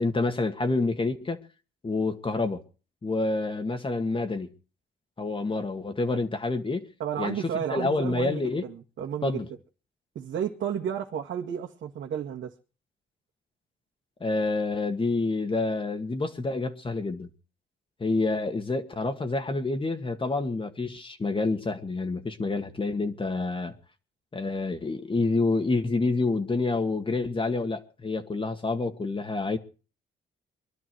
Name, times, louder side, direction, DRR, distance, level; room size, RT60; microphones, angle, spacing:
voice 1, 0.0-1.4 1.8-2.6 3.0-4.5 5.2-6.9 7.2-7.4 7.7-8.6 9.2-9.5 14.2-17.3 18.0-23.7 24.3-29.6, left 3 dB, 25° left, 1.9 m, -28 dB
voice 2, 7.0-9.4 10.2-12.5, right 9 dB, 70° right, 2.0 m, -32 dB
23.0 x 11.5 x 4.7 m
cardioid pair, 90°, 20 cm